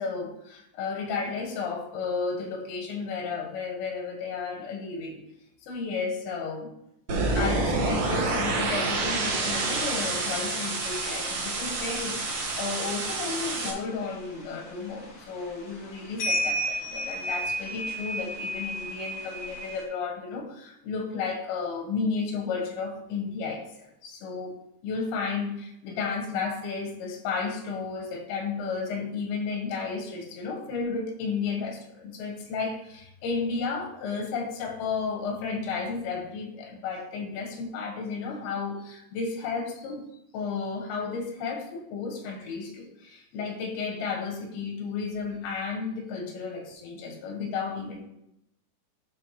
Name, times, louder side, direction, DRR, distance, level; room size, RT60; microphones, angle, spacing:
voice 1, 0.0-5.2 5.6-6.7 7.4-24.6 24.8-40.0 40.3-48.1, left 5 dB, 85° left, 3 dB, 3.7 m, -33 dB
sound 1, 7.1-13.7, right 3 dB, 80° right, 1.3 m, -28 dB
sound 2, 10.8-19.8, equal, 65° left, 0.9 m, -35 dB
11.5 x 5.2 x 3.1 m, 0.78 s
omnidirectional pair, 5.0 m